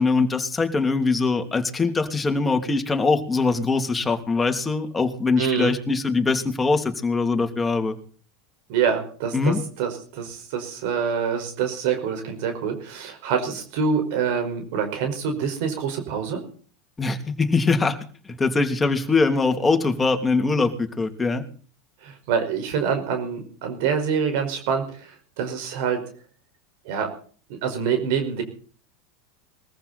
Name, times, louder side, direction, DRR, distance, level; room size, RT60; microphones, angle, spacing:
voice 1, 0.0-8.0 9.3-9.6 17.0-18.0 18.2-21.4, left 3 dB, 15° left, 5 dB, 3.0 m, -22 dB
voice 2, 5.4-5.7 8.7-16.4 22.0-26.0 26.9-27.1 27.5-28.4, right 6 dB, 65° right, 6 dB, 5.2 m, -26 dB
22.0 x 15.0 x 4.3 m, 0.43 s
hypercardioid pair, 110°, 0 cm